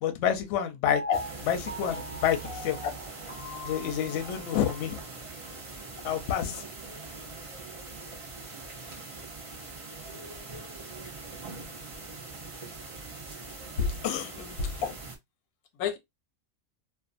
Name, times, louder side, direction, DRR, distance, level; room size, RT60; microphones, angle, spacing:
voice 1, 0.0-1.0 1.5-2.8 3.6-5.0 6.0-6.6 14.0-14.3, left 9 dB, 65° left, 0.8 m, -28 dB
Piano, 0.9-4.9 5.4-5.5, left 1 dB, 10° left, 0.7 m, -40 dB
sound 1, 1.1-15.2, right 3 dB, 60° right, 0.3 m, -42 dB
voice 2, 13.8-15.0 15.8-16.0, left 6 dB, 90° left, 1.1 m, -30 dB
2.5 x 2.3 x 2.4 m
omnidirectional pair, 1.5 m